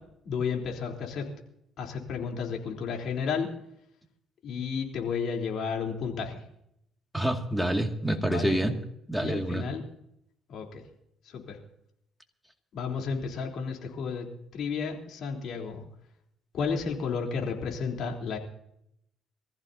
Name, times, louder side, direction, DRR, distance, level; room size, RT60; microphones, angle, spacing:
voice 1, 0.3-1.3 1.8-3.5 4.4-6.4 8.3-8.7 9.2-9.8 10.5-10.8 11.2-11.6 12.7-14.3 14.5-15.8 16.5-18.4, left 6 dB, 65° left, 1 dB, 3.6 m, -32 dB
voice 2, 7.1-8.7 9.1-9.7, right 1 dB, ahead, 4 dB, 2.3 m, -27 dB
25.0 x 14.5 x 2.8 m, 0.76 s
cardioid pair, 85°, 0 cm